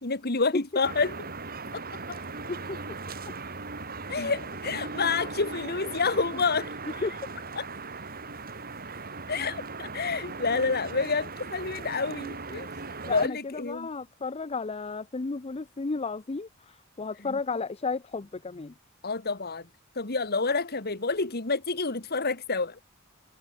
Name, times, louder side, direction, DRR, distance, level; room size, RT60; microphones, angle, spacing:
voice 1, 0.0-1.3 1.7-1.8 2.1-2.2 4.1-7.0 7.6-7.7 9.3-12.7 13.1-13.9 17.2-17.4 19.0-19.7 20.0-22.9, left 4 dB, 50° left, 2.2 m, -29 dB
sound 1, 0.8-13.3, right 3 dB, 45° right, 5.5 m, -38 dB
voice 2, 2.1-2.8 7.0-7.1 13.0-18.7, left 4 dB, 30° left, 0.6 m, -33 dB
open air
head